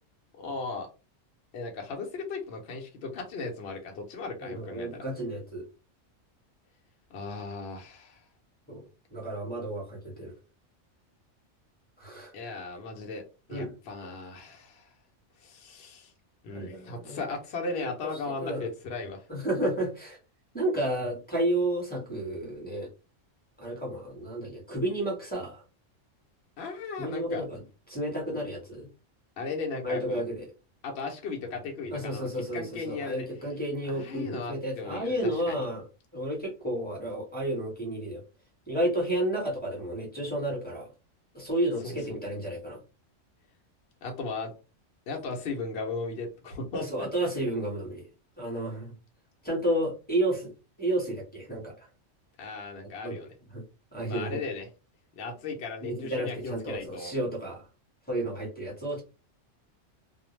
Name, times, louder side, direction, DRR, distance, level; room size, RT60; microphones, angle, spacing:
voice 1, 0.3-0.9 1.5-5.0 7.1-8.2 12.3-13.2 13.5-14.9 15.4-16.1 16.4-19.2 26.6-27.4 29.4-30.2 30.8-33.3 33.8-35.6 41.8-42.2 44.0-44.5 45.1-47.5 52.4-53.3 54.1-54.7 55.2-57.1, left 3 dB, 60° left, 1 dB, 0.9 m, -37 dB
voice 2, 4.4-5.6 8.7-8.8 9.1-10.3 12.0-12.3 13.5-13.7 16.5-17.2 17.7-17.9 18.3-18.7 19.3-20.2 20.5-22.9 23.6-25.6 27.0-27.6 27.9-28.9 29.8-30.5 31.9-35.8 36.1-38.2 38.7-40.9 41.3-42.8 46.7-48.1 48.4-48.9 49.4-50.5 50.8-51.9 53.0-53.2 53.5-53.6 53.9-54.4 55.8-57.6 58.1-59.0, right 1 dB, 10° left, -3 dB, 1.0 m, -31 dB
2.3 x 2.0 x 3.0 m, 0.31 s
omnidirectional pair, 1.3 m